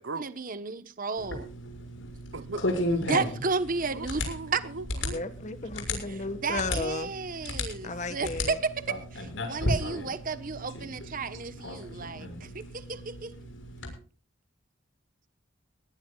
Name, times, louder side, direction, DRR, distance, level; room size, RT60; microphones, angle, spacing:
voice 1, 0.2-1.5 3.0-4.6 6.4-13.3, right 4 dB, 45° right, 1.2 m, -33 dB
sound 1, 1.2-13.9, left 1 dB, 80° left, 6.4 m, -35 dB
voice 2, 2.3-2.7 3.9-5.2 11.3-11.4, right 3 dB, 75° right, 0.8 m, -38 dB
voice 3, 5.1-7.1 7.8-8.6, left 3 dB, 40° left, 1.6 m, -34 dB
21.0 x 18.5 x 2.4 m
head